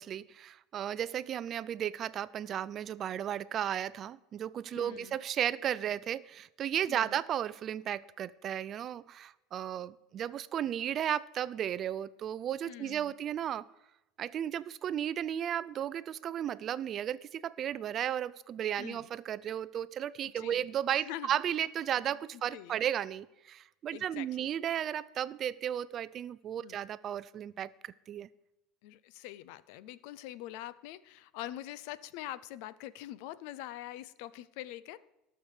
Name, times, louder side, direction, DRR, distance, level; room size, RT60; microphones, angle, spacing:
voice 1, 0.0-13.7 14.2-28.3, right 10 dB, 35° right, 0.4 m, -34 dB
voice 2, 4.7-5.2 6.9-7.2 12.7-13.1 18.8-19.1 20.4-20.6 21.0-21.3 22.5-22.8 23.9-24.5 26.6-26.8 28.8-35.0, left 14 dB, 65° left, 0.6 m, -44 dB
18.0 x 6.7 x 4.9 m
supercardioid pair, 140°, 0 cm